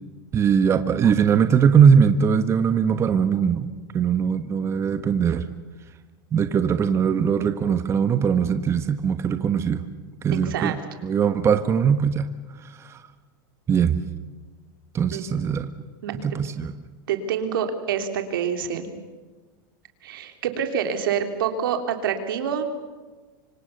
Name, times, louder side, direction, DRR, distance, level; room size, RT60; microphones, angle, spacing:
voice 1, 0.3-5.5 6.3-9.8 10.2-10.8 11.0-12.3 12.6-13.0 13.7-14.0 14.9-15.7 16.2-16.7, right 7 dB, 25° right, 9 dB, 1.3 m, -20 dB
voice 2, 10.3-10.8 15.1-15.2 16.0-16.1 17.1-18.9 20.0-22.7, right 8 dB, 80° right, 6 dB, 3.4 m, -26 dB
25.5 x 25.0 x 6.8 m, 1.3 s
supercardioid pair, 135°, 11 cm